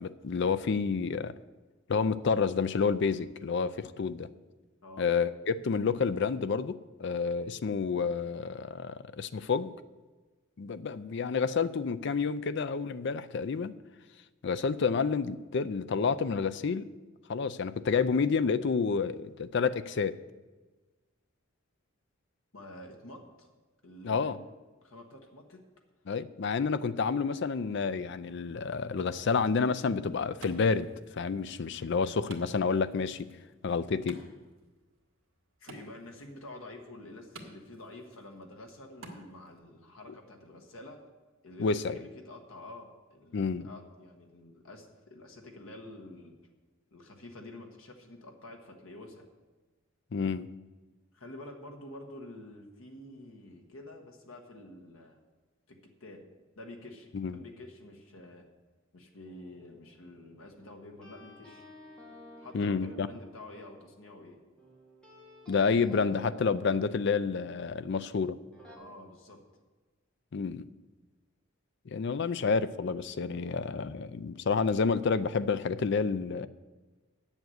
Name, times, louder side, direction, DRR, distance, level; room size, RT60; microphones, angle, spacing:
voice 1, 0.0-1.3 1.9-4.3 5.0-9.7 10.6-13.7 14.4-16.8 17.3-20.2 24.0-24.4 26.1-30.9 31.2-33.3 33.6-34.2 41.6-42.0 43.3-43.7 50.1-50.5 57.1-57.4 62.5-63.1 65.5-68.4 70.3-70.6 71.9-76.5, left 5 dB, 55° left, 14 dB, 0.4 m, -29 dB
voice 2, 22.5-23.5 23.8-24.3 24.8-25.6 35.6-41.0 41.4-46.4 46.9-49.2 51.1-55.2 55.7-56.3 56.5-58.5 58.9-61.7 62.4-64.4 68.8-69.4, left 1 dB, 80° left, 2 dB, 1.4 m, -48 dB
Wood, 29.6-39.6, right 3 dB, 75° right, 1.6 m, -54 dB
sound 1, 59.2-68.1 68.5-68.8, right 1 dB, 5° left, 1.9 m, -53 dB
9.1 x 7.2 x 7.9 m, 1.3 s
head